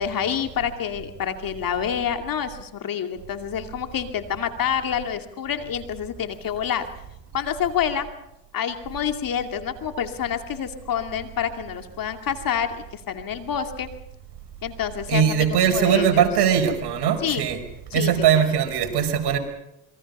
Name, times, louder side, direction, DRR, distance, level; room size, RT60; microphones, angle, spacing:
voice 1, 0.0-6.9 7.3-8.1 8.5-13.9 14.6-16.3 17.2-17.4 17.9-18.1, left 8 dB, 45° left, 6 dB, 2.5 m, -27 dB
voice 2, 15.1-17.6 17.9-19.4, right 8 dB, 55° right, 5 dB, 5.2 m, -20 dB
27.5 x 22.5 x 5.5 m, 0.87 s
supercardioid pair, 85°, 47 cm